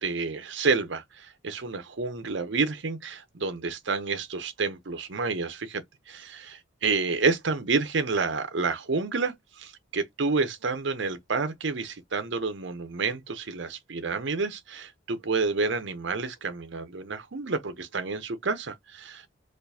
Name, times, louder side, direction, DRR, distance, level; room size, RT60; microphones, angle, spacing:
voice 1, 0.0-19.3, right 4 dB, 70° right, 0.7 m, -29 dB
4.4 x 2.5 x 2.7 m
head